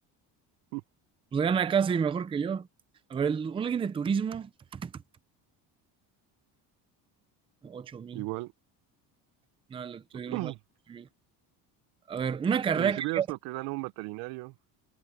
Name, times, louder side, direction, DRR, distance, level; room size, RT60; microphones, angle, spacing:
voice 1, 1.3-2.7 3.1-4.9 7.6-8.2 9.7-10.5 10.9-11.1 12.1-13.3, right 7 dB, 15° right, 0.5 m, -29 dB
voice 2, 8.1-8.5 10.3-10.6 12.8-14.5, right 23 dB, 80° right, 0.7 m, -35 dB
cardioid pair, 170°, 38 cm